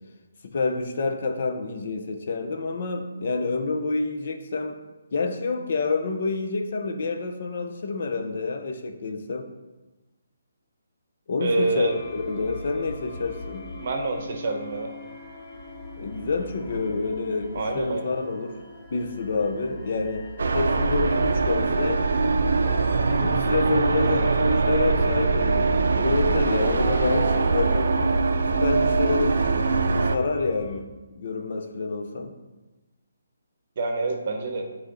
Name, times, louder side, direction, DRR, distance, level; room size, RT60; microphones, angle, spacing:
voice 1, 0.5-4.8 5.1-9.5 11.3-13.6 16.0-18.6 18.9-20.2 20.5-22.0 23.0-27.9 28.6-29.4 30.0-30.9 31.2-32.3, left 4 dB, 45° left, 6 dB, 0.5 m, -28 dB
voice 2, 11.4-12.0 13.8-14.9 17.5-18.1 33.8-34.7, right 3 dB, 40° right, 3 dB, 0.8 m, -27 dB
sound 1, 11.5-30.8, left 1 dB, 15° left, 0.8 m, -40 dB
sound 2, 20.4-30.2, right 4 dB, 65° right, 0.5 m, -22 dB
8.3 x 3.1 x 3.9 m, 1.1 s
hypercardioid pair, 175°, 0 cm